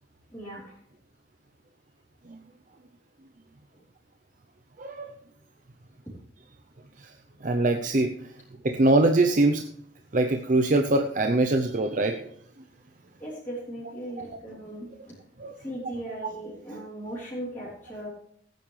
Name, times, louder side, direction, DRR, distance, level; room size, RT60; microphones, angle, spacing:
voice 1, 0.3-0.8 3.7-3.8 6.1-6.2 13.2-15.2 15.6-18.1, right 1 dB, 10° left, -9 dB, 3.5 m, -38 dB
voice 2, 4.8-5.1 7.0-7.1 7.4-8.3 8.6-9.7 10.1-12.3 15.4-15.5, right 2 dB, 45° right, 5 dB, 0.6 m, -23 dB
17.0 x 9.1 x 3.3 m, 0.67 s
head